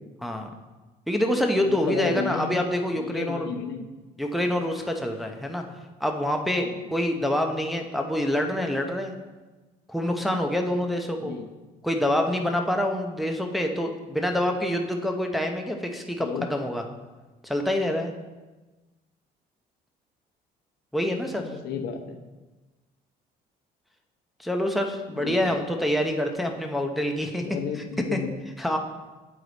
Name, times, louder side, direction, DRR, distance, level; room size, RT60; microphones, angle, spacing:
voice 1, 1.1-3.5 4.2-5.6 6.0-9.1 9.9-11.3 11.8-16.8 17.4-18.1 20.9-21.5 24.4-27.4 28.1-28.2 28.6-28.8, left 1 dB, ahead, 2 dB, 0.7 m, -26 dB
voice 2, 1.6-2.6 2.9-3.9 6.6-6.7 11.2-11.5 16.2-16.5 21.3-22.2 25.2-25.6 27.4-28.3, left 6 dB, 75° left, 6 dB, 0.8 m, -33 dB
8.3 x 4.8 x 4.0 m, 1.2 s
cardioid pair, 110°, 17 cm